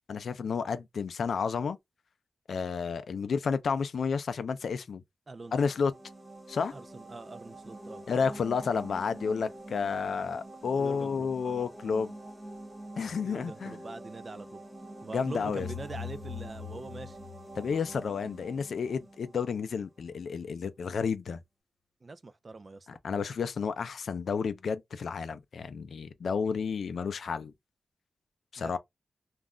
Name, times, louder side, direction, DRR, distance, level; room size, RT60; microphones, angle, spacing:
voice 1, 0.1-1.8 2.5-5.0 5.5-5.9 6.5-6.7 8.1-12.1 13.0-13.8 15.1-15.7 17.6-21.4 23.0-27.5 28.5-28.8, left 5 dB, 80° left, 0.4 m, -31 dB
sound 1, 5.3-20.0, right 1 dB, 20° right, 0.8 m, -47 dB
voice 2, 6.7-8.0 10.7-11.3 13.2-14.6 15.0-17.2 22.0-22.9 28.6-28.8, right 3 dB, 35° right, 0.3 m, -43 dB
sound 2, 15.4-18.3, left 8 dB, 55° right, 1.0 m, -43 dB
2.4 x 2.1 x 3.5 m
wide cardioid pair, 125°, 0 cm